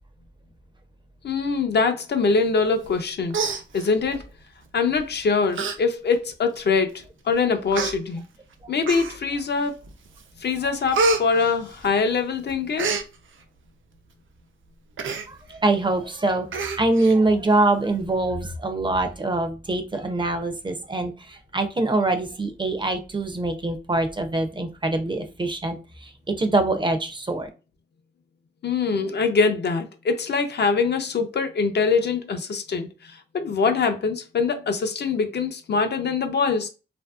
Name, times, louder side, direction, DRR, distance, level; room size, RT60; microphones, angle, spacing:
voice 1, 1.2-3.4 3.7-4.2 4.7-8.2 8.7-9.8 10.4-12.9 28.6-36.7, left 4 dB, 60° left, 0.4 m, -23 dB
Human voice, 2.8-3.0 3.3-4.2 5.0-5.1 5.5-5.8 6.1-6.2 7.0-7.1 7.7-7.9 8.8-9.4 9.9-10.2 10.5-12.2 12.5-13.1 15.0-15.3 15.6-15.7 16.0-16.1 16.5-17.2 17.5-17.6, right 3 dB, 85° right, 0.4 m, -27 dB
voice 2, 15.1-27.5, right 2 dB, 25° right, 0.4 m, -24 dB
2.7 x 2.5 x 2.2 m
wide cardioid pair, 125°, 20 cm